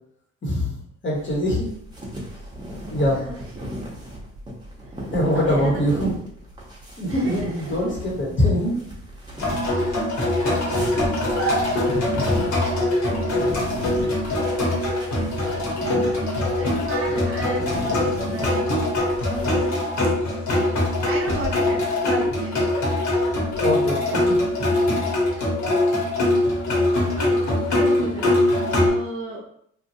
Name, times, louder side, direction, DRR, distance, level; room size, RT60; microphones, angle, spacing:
voice 1, 0.4-0.8 1.0-1.7 2.9-3.2 5.1-6.1 7.0-8.7 9.8-10.0 23.6-24.4, left 1 dB, 40° left, -3 dB, 1.3 m, -23 dB
sound 1, 1.1-19.8, equal, 15° right, 1.0 m, -35 dB
voice 2, 3.2-3.9 5.3-6.1 7.1-7.9 9.7-10.5 11.4-11.8 13.0-13.2 14.0-15.0 16.0-16.3 16.5-20.4 21.1-22.9 26.7-28.3 28.8-29.4, right 2 dB, 45° right, -2 dB, 0.8 m, -34 dB
sound 2, 9.4-28.9, left 1 dB, 70° left, 1.3 m, -22 dB
2.9 x 2.5 x 2.7 m, 0.69 s
cardioid pair, 90°, 30 cm